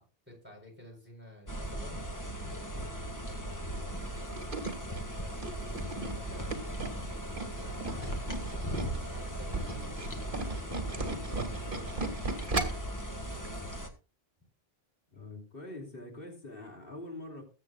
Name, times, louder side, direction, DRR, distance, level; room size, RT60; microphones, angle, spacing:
voice 1, 0.0-2.0 3.9-9.8 11.0-12.5, left 1 dB, 10° right, 1 dB, 4.3 m, -54 dB
sound 1, 1.5-13.9, equal, 20° left, 1.6 m, -38 dB
Tools, 4.1-9.0 9.4-12.9 13.3-13.5 13.8-13.9, right 3 dB, 55° right, 1.9 m, -36 dB
voice 2, 15.1-17.4, left 2 dB, 65° left, 2 dB, 3.2 m, -44 dB
20.5 x 8.1 x 2.4 m, 0.33 s
omnidirectional pair, 1.0 m